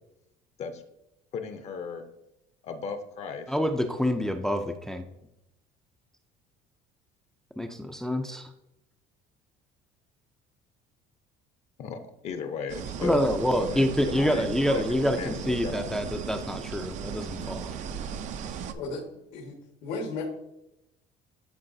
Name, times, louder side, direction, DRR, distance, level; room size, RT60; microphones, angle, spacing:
voice 1, 1.3-2.0 2.6-3.5 11.8-15.9, left 5 dB, 45° left, 8 dB, 0.7 m, -37 dB
voice 2, 3.5-5.0 7.6-8.5 13.0-17.8, equal, 5° left, 5 dB, 0.4 m, -27 dB
sound 1, 12.7-18.7, right 7 dB, 50° right, 0.5 m, -37 dB
voice 3, 18.7-19.0 19.3-19.5 19.8-20.2, left 3 dB, 85° left, -2 dB, 1.5 m, -34 dB
11.5 x 3.9 x 2.7 m, 0.85 s
cardioid pair, 125°, 15 cm